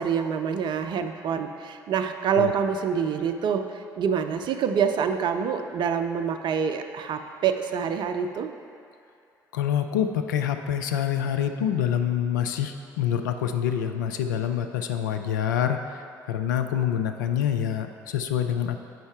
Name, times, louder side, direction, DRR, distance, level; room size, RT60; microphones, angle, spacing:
voice 1, 0.0-8.5, right 7 dB, 50° right, 7 dB, 0.5 m, -26 dB
voice 2, 9.5-16.0 16.3-18.8, left 9 dB, 80° left, 7 dB, 0.4 m, -26 dB
7.7 x 5.3 x 3.5 m, 2.4 s
figure-of-eight pair, 50°, 10 cm